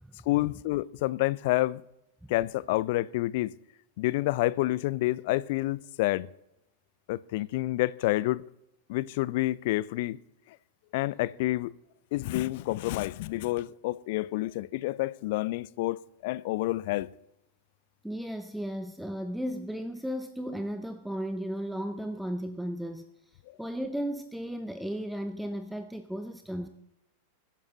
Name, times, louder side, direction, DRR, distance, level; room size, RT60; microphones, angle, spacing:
voice 1, 0.3-1.8 2.3-3.5 4.0-6.3 7.1-8.4 8.9-10.2 10.9-11.7 12.1-17.1, left 18 dB, 50° left, 0.4 m, -28 dB
voice 2, 18.0-23.1 23.6-26.7, equal, ahead, 0.8 m, -35 dB
21.0 x 10.0 x 3.9 m
figure-of-eight pair, 90°, 0 cm